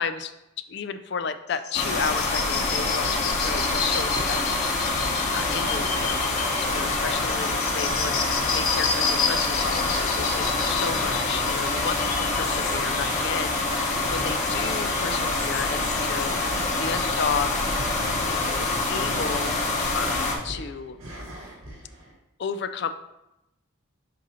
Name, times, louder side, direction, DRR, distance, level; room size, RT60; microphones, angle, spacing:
voice 1, 0.0-4.8 5.3-17.6 18.2-21.0 22.4-22.9, left 6 dB, 50° left, 11 dB, 0.4 m, -33 dB
sound 1, 1.5-12.8, left 6 dB, 85° left, 0.7 m, -31 dB
sound 2, 1.7-20.3, left 2 dB, 35° left, 0.9 m, -26 dB
sound 3, 2.9-22.1, right 1 dB, 75° right, 1.3 m, -41 dB
7.6 x 2.7 x 5.5 m, 0.90 s
head